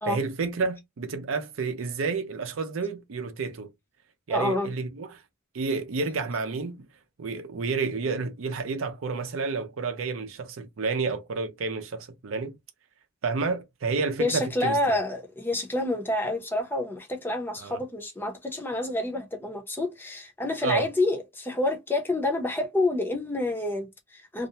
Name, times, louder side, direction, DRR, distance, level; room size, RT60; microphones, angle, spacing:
voice 1, 0.1-3.7 4.3-5.2 5.5-6.9 7.2-12.6 13.2-15.0 17.6-17.8 20.6-20.9, right 4 dB, 80° right, 0.5 m, -30 dB
voice 2, 4.3-4.7 14.2-24.5, left 2 dB, 10° left, 0.6 m, -28 dB
2.4 x 2.1 x 2.6 m
head